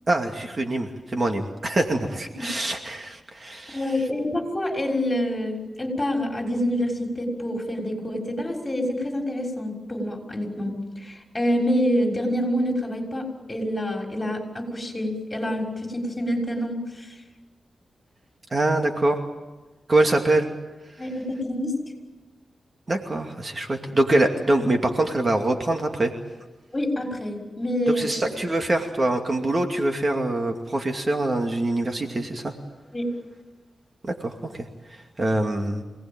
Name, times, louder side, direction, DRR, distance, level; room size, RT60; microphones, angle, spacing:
voice 1, 0.1-3.8 18.5-19.2 19.9-20.5 22.9-26.1 27.9-32.5 34.0-35.8, right 2 dB, 40° right, 3 dB, 2.5 m, -24 dB
voice 2, 3.7-17.2 21.0-21.8 26.7-28.1 32.9-33.1, equal, 20° left, 1 dB, 6.1 m, -27 dB
27.0 x 19.0 x 9.1 m, 1.2 s
cardioid pair, 80°, 0 cm